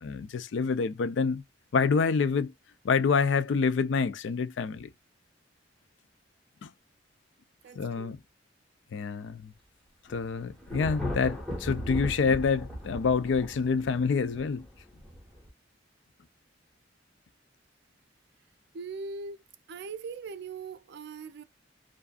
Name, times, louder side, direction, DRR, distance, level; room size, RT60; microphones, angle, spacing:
voice 1, 0.0-1.4 1.7-2.5 2.8-4.9 6.6-6.7 7.8-8.2 8.9-9.5 10.1-14.6, left 5 dB, 70° left, 0.4 m, -27 dB
voice 2, 7.6-8.1 18.7-19.4 19.7-21.4, right 4 dB, 60° right, 0.4 m, -40 dB
Thunder, 10.1-15.5, equal, 5° left, 1.1 m, -37 dB
2.5 x 2.4 x 2.3 m
head